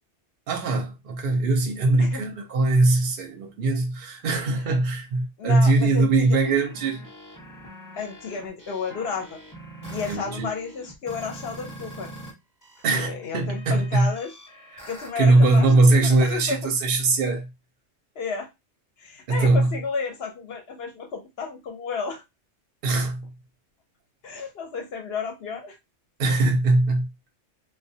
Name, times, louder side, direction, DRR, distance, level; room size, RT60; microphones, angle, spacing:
voice 1, 0.5-7.0 10.1-10.5 12.8-14.1 15.2-17.5 19.3-19.7 22.8-23.3 26.2-27.1, right 2 dB, 55° right, 0.7 m, -21 dB
voice 2, 5.4-6.4 7.9-9.4 9.9-12.1 13.0-14.3 14.9-15.7 16.0-16.6 18.2-18.5 19.0-22.2 24.2-25.8, left 5 dB, 60° left, 0.8 m, -32 dB
sound 1, 6.1-12.3 12.6-15.9, right 1 dB, 15° left, 0.9 m, -43 dB
2.3 x 2.1 x 2.6 m
omnidirectional pair, 1.3 m